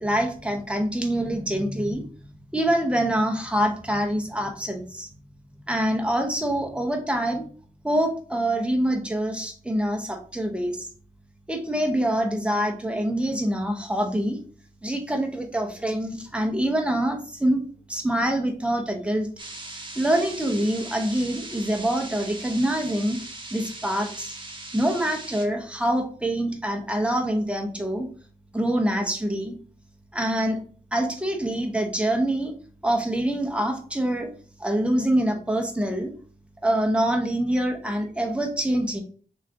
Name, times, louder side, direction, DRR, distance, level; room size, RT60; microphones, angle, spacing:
voice 1, 0.0-2.1 2.5-5.1 5.7-7.5 7.8-10.9 11.5-14.4 14.8-17.6 17.9-19.3 19.9-23.2 23.5-24.4 24.7-28.1 28.5-29.5 30.1-30.6 30.9-32.5 32.8-34.3 34.6-36.1 36.6-39.0, right 1 dB, 5° right, 3 dB, 0.9 m, -25 dB
sound 1, 19.4-25.5, right 2 dB, 30° right, 0.9 m, -39 dB
3.6 x 3.1 x 3.7 m, 0.43 s
wide cardioid pair, 75°, 15 cm